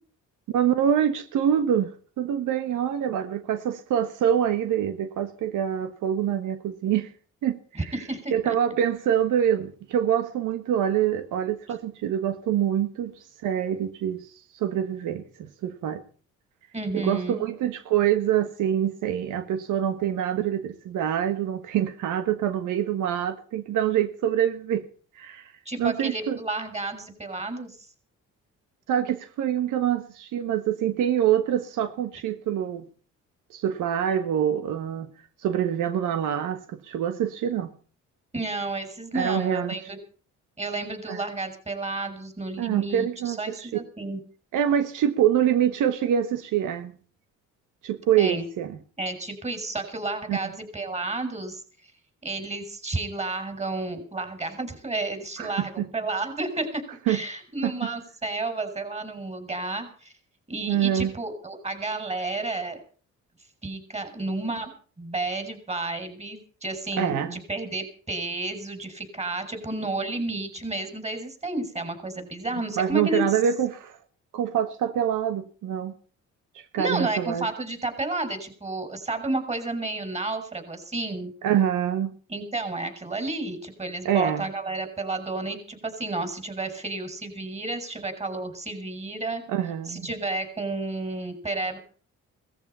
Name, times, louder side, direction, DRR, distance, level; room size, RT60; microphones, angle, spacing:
voice 1, 0.5-7.1 7.4-7.9 8.3-16.0 16.9-24.8 25.1-25.5 25.8-26.4 28.9-32.9 33.5-35.1 35.4-37.7 39.1-39.8 41.1-41.2 42.6-43.8 44.5-46.9 47.8-48.8 50.3-50.4 55.4-55.9 57.1-57.2 57.6-57.7 60.7-61.1 66.9-67.3 72.8-74.0 74.3-75.9 76.5-77.5 81.4-82.1 84.0-84.4 89.5-90.1, right 10 dB, 85° right, 1.5 m, -25 dB
voice 2, 7.7-8.6 16.7-17.5 25.6-27.9 38.3-40.0 40.6-44.2 48.2-48.4 49.0-51.9 52.2-60.1 60.5-62.8 63.6-73.4 76.8-81.3 82.3-89.4 89.9-91.8, right 2 dB, 20° right, 6.1 m, -31 dB
18.0 x 14.5 x 5.6 m
cardioid pair, 90°, 30 cm